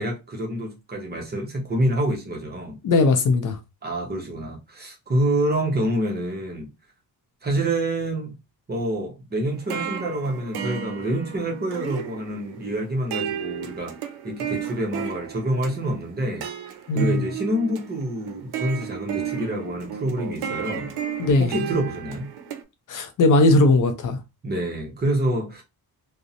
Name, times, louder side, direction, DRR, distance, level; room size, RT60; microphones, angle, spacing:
voice 1, 0.0-2.8 3.8-6.7 7.4-8.4 8.7-13.9 14.2-16.5 16.9-20.9 21.4-22.3 24.4-25.6, right 1 dB, 25° right, 0.7 m, -27 dB
voice 2, 2.8-3.6 16.9-17.2 21.2-21.5 22.9-24.2, left 2 dB, 55° left, 0.4 m, -18 dB
sound 1, 9.5-22.6, right 8 dB, 80° right, 0.5 m, -33 dB
2.4 x 2.0 x 2.7 m
wide cardioid pair, 160°, 38 cm